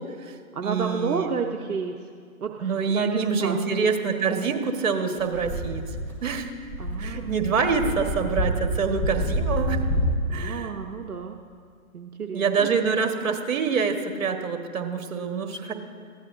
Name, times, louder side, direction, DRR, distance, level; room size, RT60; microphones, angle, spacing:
voice 1, 0.0-0.3 0.6-1.3 2.6-5.8 6.2-6.5 7.0-9.8 10.3-10.7 12.3-15.7, right 5 dB, 60° right, 5 dB, 1.6 m, -26 dB
voice 2, 0.5-2.0 2.4-3.6 6.8-7.4 10.2-11.4 11.9-12.7, right 6 dB, 85° right, 3 dB, 0.9 m, -31 dB
sound 1, 5.2-10.2, equal, 5° left, 1.4 m, -28 dB
19.5 x 15.5 x 2.7 m, 2.1 s
figure-of-eight pair, 135°, 43 cm